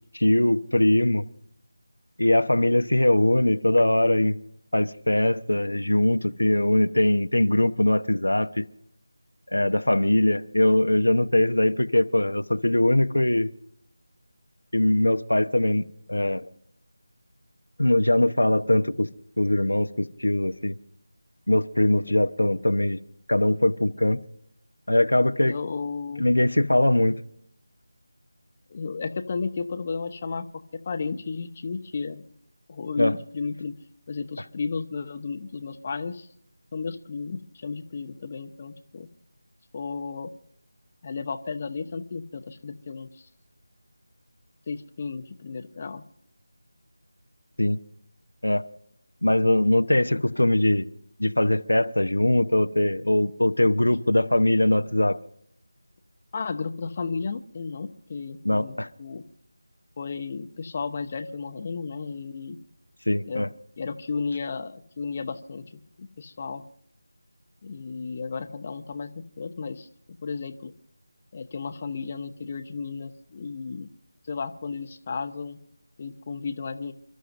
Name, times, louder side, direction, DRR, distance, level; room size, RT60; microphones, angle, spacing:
voice 1, 0.1-1.3 2.2-4.4 4.7-8.7 9.5-13.5 14.7-15.8 16.1-16.5 17.8-19.1 19.4-20.8 21.5-23.0 23.3-24.2 24.9-25.6 26.2-27.2 33.0-33.2 47.6-47.8 48.4-48.6 49.2-50.9 51.2-55.2 58.4-58.9 63.1-63.5, left 1 dB, 90° left, 9 dB, 0.9 m, -21 dB
voice 2, 25.4-26.3 28.7-30.4 30.9-32.2 32.7-33.7 34.1-36.3 36.7-39.1 39.7-40.3 41.0-43.3 44.7-46.0 56.3-59.2 60.0-62.6 63.3-63.4 63.8-65.6 66.0-66.6 67.6-69.9 70.2-70.7 71.3-73.9 74.3-75.6 76.0-76.9, left 4 dB, 30° left, 8 dB, 0.8 m, -33 dB
29.5 x 12.5 x 2.6 m, 0.69 s
figure-of-eight pair, 165°, 0 cm